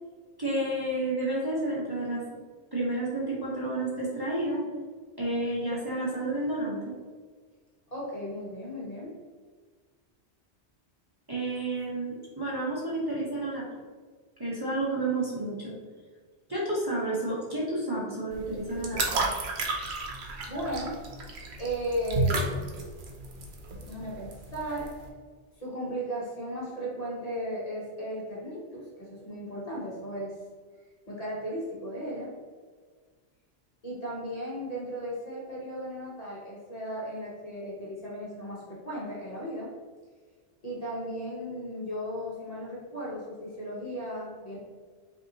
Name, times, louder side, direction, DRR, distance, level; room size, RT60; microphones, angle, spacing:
voice 1, 0.4-2.4 2.7-4.6 5.2-6.9 11.3-13.6 14.4-15.8 16.5-19.2, right 2 dB, 20° right, -7 dB, 0.9 m, -30 dB
voice 2, 7.9-9.2 20.5-21.0 21.6-22.9 23.8-24.9 25.6-30.4 31.1-32.3 33.8-39.7 40.6-44.6, equal, 35° left, -5 dB, 1.0 m, -36 dB
sound 1, 18.3-25.0, right 2 dB, 70° right, 1.0 m, -32 dB
5.5 x 2.7 x 2.9 m, 1.5 s
omnidirectional pair, 1.2 m